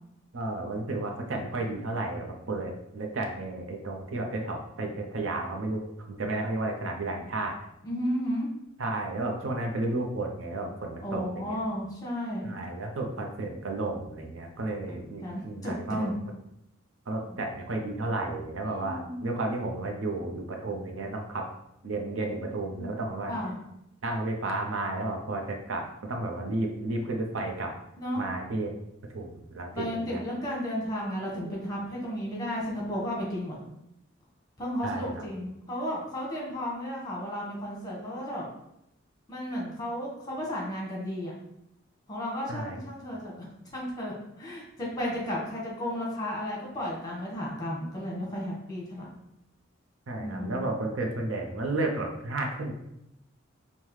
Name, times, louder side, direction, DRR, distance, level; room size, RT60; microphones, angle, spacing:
voice 1, 0.3-5.8 6.1-7.6 8.8-11.6 12.4-16.1 17.1-21.5 21.8-23.3 24.0-27.7 28.2-28.8 29.1-30.2 34.8-35.2 42.5-42.8 50.1-52.7, right 2 dB, 85° right, 2 dB, 0.6 m, -32 dB
voice 2, 7.8-8.5 11.0-12.5 15.2-16.1 18.6-19.4 22.7-22.9 23.3-23.6 28.0-28.3 29.7-33.6 34.6-38.5 39.3-41.3 42.1-43.3 43.7-49.1 50.2-50.7, equal, 20° left, -3 dB, 1.2 m, -33 dB
5.5 x 2.2 x 3.1 m, 0.82 s
head